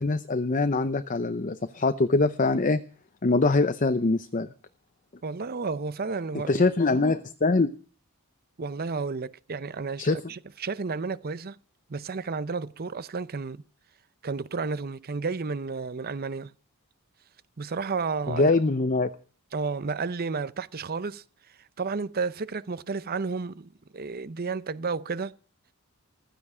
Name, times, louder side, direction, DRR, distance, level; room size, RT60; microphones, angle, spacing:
voice 1, 0.0-2.8 3.2-4.5 6.5-7.7 10.0-10.2 18.3-19.1, left 3 dB, 35° left, 0.7 m, -23 dB
voice 2, 5.2-6.6 8.6-11.6 11.9-13.6 14.2-16.5 17.6-18.5 19.5-21.2 21.8-25.3, right 4 dB, 45° right, 0.6 m, -32 dB
15.5 x 13.0 x 5.0 m
head